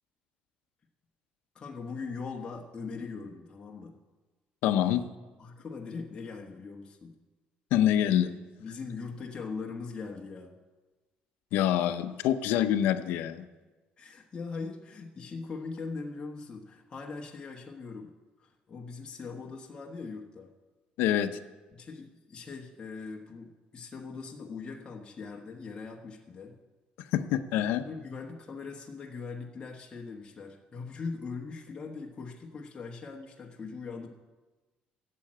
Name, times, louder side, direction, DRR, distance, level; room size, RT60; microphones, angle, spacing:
voice 1, 1.5-4.0 5.4-7.2 8.6-10.6 14.0-20.5 21.7-26.6 27.8-34.1, left 4 dB, 25° left, -1 dB, 1.3 m, -41 dB
voice 2, 4.6-5.0 7.7-8.3 11.5-13.4 21.0-21.3 27.1-27.8, left 11 dB, 90° left, 10 dB, 0.7 m, -26 dB
12.5 x 7.6 x 8.8 m, 1.2 s
cardioid pair, 130°, 3 cm